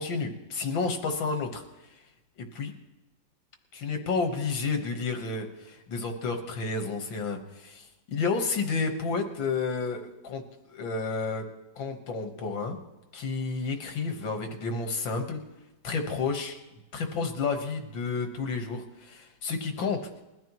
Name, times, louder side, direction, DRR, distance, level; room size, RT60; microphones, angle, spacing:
voice 1, 0.0-1.6 2.4-2.7 3.7-10.4 10.7-11.5 11.8-12.8 13.1-15.4 15.8-16.6 16.9-20.2, left 4 dB, 80° left, 5 dB, 2.2 m, -31 dB
21.0 x 13.5 x 3.1 m, 1.0 s
omnidirectional pair, 2.1 m